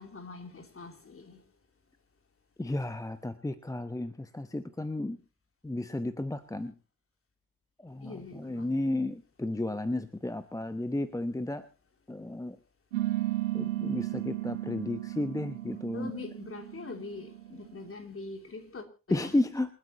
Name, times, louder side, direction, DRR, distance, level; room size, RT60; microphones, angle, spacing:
voice 1, 0.0-1.4 8.0-8.7 15.9-19.4, left 3 dB, 35° left, 3.1 m, -43 dB
voice 2, 2.6-5.2 5.6-6.7 7.8-11.7 12.1-12.6 13.5-16.1 19.1-19.7, left 1 dB, 10° left, 1.0 m, -33 dB
sound 1, 12.9-17.9, right 16 dB, 85° right, 0.6 m, -34 dB
28.0 x 9.4 x 3.0 m
figure-of-eight pair, 40°, 38 cm